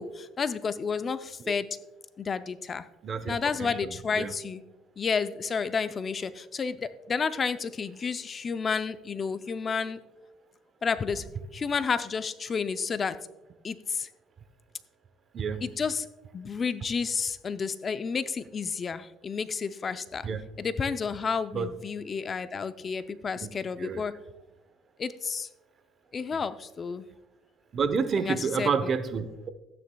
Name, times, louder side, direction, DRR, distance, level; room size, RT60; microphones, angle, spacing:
voice 1, 0.0-1.7 2.2-2.9 3.3-4.6 5.0-10.0 10.8-11.3 11.5-13.2 13.6-14.1 15.6-16.1 16.3-20.3 20.6-24.2 25.0-25.5 26.1-27.1 28.2-28.7, left 5 dB, 30° left, 13 dB, 0.4 m, -31 dB
voice 2, 3.0-3.8 4.1-4.3 15.3-15.7 20.2-20.4 21.5-21.7 23.4-23.5 23.8-24.0 27.7-29.5, right 5 dB, 35° right, 12 dB, 0.7 m, -29 dB
15.0 x 9.4 x 2.3 m, 1.0 s
cardioid pair, 120°, 0 cm